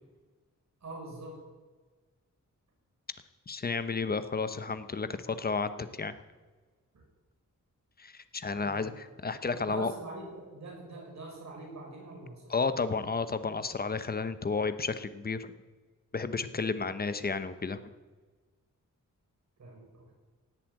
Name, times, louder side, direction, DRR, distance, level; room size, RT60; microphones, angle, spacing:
voice 1, 0.8-1.4 8.5-9.0 9.5-13.1 19.6-20.1, right 2 dB, 60° right, -2 dB, 6.5 m, -44 dB
voice 2, 3.5-6.1 8.0-9.9 12.5-15.5 16.1-17.8, left 4 dB, 30° left, 12 dB, 0.9 m, -32 dB
17.0 x 8.4 x 9.1 m, 1.4 s
wide cardioid pair, 150°, 31 cm